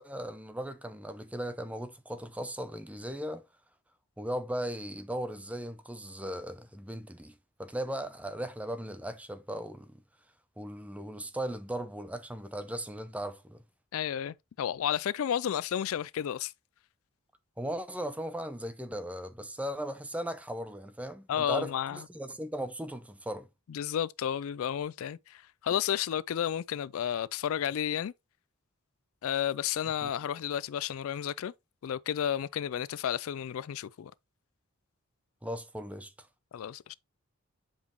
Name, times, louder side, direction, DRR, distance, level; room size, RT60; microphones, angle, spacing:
voice 1, 0.0-3.4 4.2-10.0 10.6-13.6 17.6-23.5 30.0-30.1 35.4-36.3, right 1 dB, 5° right, 0.5 m, -37 dB
voice 2, 13.9-16.5 21.3-22.0 23.7-28.1 29.2-31.5 31.8-34.1 36.5-36.9, left 9 dB, 70° left, 0.3 m, -32 dB
7.2 x 5.1 x 3.0 m
head